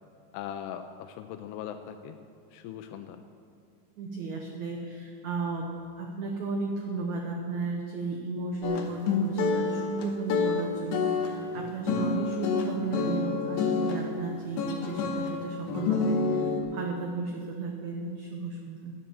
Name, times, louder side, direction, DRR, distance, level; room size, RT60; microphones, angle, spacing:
voice 1, 0.3-2.2 2.5-3.2, left 9 dB, 90° left, 7 dB, 2.6 m, -40 dB
voice 2, 4.0-18.9, right 3 dB, 90° right, 2 dB, 1.6 m, -34 dB
sound 1, 8.6-14.0 14.6-15.3 15.7-16.6, left 4 dB, 70° left, 2.7 m, -28 dB
10.5 x 10.0 x 7.0 m, 2.3 s
omnidirectional pair, 4.6 m